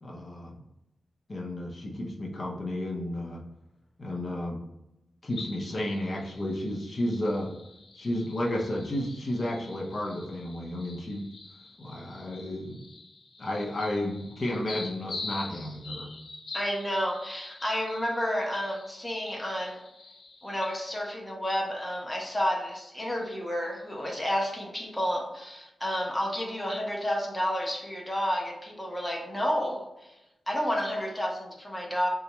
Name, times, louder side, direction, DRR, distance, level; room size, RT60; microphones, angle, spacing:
voice 1, 0.0-0.5 1.3-3.4 4.0-4.6 5.2-7.5 8.0-11.2 11.8-12.8 13.4-16.1, left 1 dB, 45° left, -1 dB, 0.7 m, -32 dB
sound 1, 5.3-20.9, left 3 dB, 85° left, 1.1 m, -45 dB
voice 2, 16.5-19.8 20.4-30.2 30.5-32.1, equal, 10° left, -1 dB, 0.7 m, -30 dB
4.0 x 2.4 x 2.9 m, 0.92 s
wide cardioid pair, 105°, 0 cm